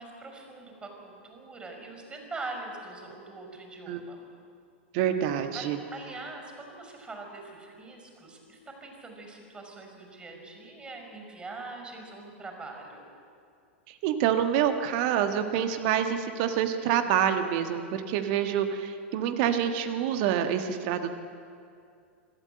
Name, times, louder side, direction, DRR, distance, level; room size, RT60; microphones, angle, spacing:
voice 1, 0.0-4.2 5.5-13.0, right 3 dB, 15° right, 2 dB, 5.6 m, -43 dB
voice 2, 4.9-5.8 13.9-21.1, right 9 dB, 50° right, 7 dB, 1.6 m, -27 dB
25.5 x 13.0 x 7.9 m, 2.4 s
figure-of-eight pair, 95°, 7 cm